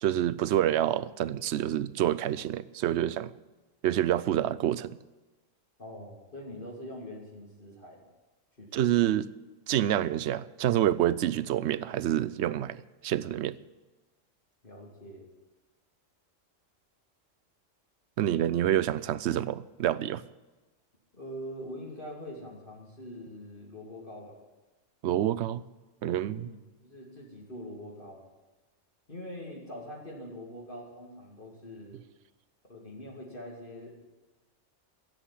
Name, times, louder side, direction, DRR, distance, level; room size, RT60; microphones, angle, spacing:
voice 1, 0.0-3.3 3.8-5.0 8.7-9.3 9.7-13.6 18.2-20.2 25.0-25.6 26.0-26.5, right 11 dB, 65° right, 17 dB, 0.9 m, -27 dB
voice 2, 5.8-8.0 8.6-8.9 14.6-15.3 21.1-24.4 26.3-28.2 29.1-32.0 32.6-34.1, equal, 40° left, -2 dB, 2.9 m, -43 dB
16.5 x 7.7 x 10.0 m, 1.2 s
omnidirectional pair, 1.3 m